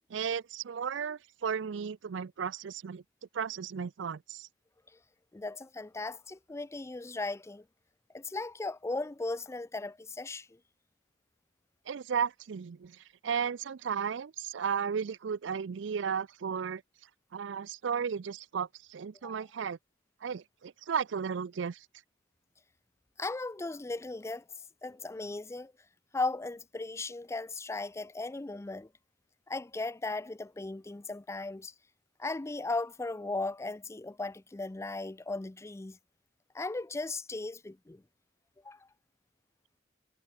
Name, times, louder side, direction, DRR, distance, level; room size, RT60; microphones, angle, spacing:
voice 1, 0.1-3.0 3.3-4.5 11.9-16.8 17.3-19.8 20.2-21.9, right 7 dB, 70° right, 0.4 m, -34 dB
voice 2, 5.3-7.6 8.1-10.6 19.2-19.3 23.2-24.4 24.8-25.7 26.1-28.9 29.5-31.7 32.2-36.0 36.5-38.0 38.6-38.9, left 3 dB, 15° left, 0.4 m, -37 dB
head